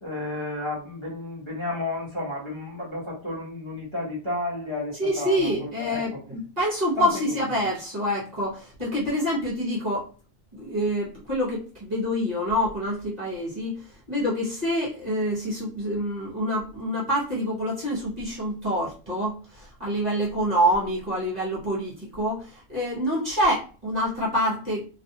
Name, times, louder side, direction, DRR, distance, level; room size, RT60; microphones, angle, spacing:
voice 1, 0.0-6.2 7.0-7.4, left 2 dB, 25° left, -8 dB, 0.9 m, -32 dB
voice 2, 5.0-10.1 10.5-24.9, equal, 35° right, -8 dB, 1.0 m, -26 dB
2.6 x 2.4 x 2.7 m, 0.38 s
omnidirectional pair, 1.4 m